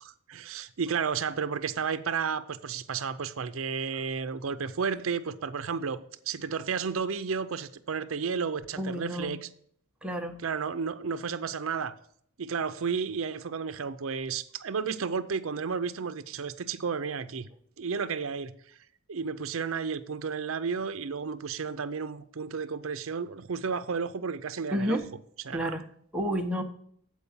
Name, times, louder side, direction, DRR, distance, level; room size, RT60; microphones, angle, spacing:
voice 1, 0.0-6.0 6.3-9.5 10.4-11.9 12.4-17.5 17.8-18.5 19.1-25.0 25.4-25.8, right 5 dB, 70° right, 0.6 m, -32 dB
voice 2, 8.8-9.3 10.0-10.4 24.7-25.0 25.5-25.9 26.1-26.6, equal, 5° right, 0.9 m, -30 dB
8.3 x 4.6 x 7.2 m
head